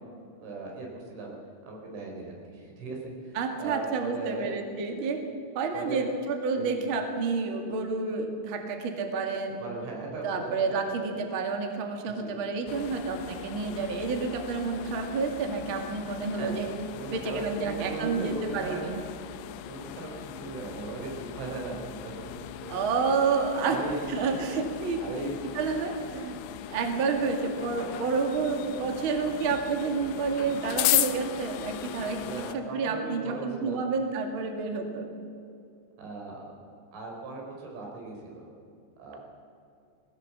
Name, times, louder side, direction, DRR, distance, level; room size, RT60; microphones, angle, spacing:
voice 1, 0.0-1.3 1.7-4.5 5.7-6.1 6.5-6.8 9.6-10.5 12.1-12.3 16.3-18.8 19.3-22.3 22.6-22.8 23.6-24.4 25.0-25.5 27.2-27.3 32.2-33.9 36.0-38.5 39.0-39.2, right 3 dB, 90° right, 0 dB, 6.5 m, -38 dB
voice 2, 3.3-5.2 5.5-9.6 10.2-16.7 17.1-19.0 22.7-23.8 24.1-25.3 25.5-26.4 26.7-35.1, right 4 dB, 40° right, 3 dB, 1.9 m, -29 dB
sound 1, 12.7-32.6, left 13 dB, 75° left, 2.6 m, -37 dB
21.0 x 18.0 x 7.3 m, 2.5 s
omnidirectional pair, 5.2 m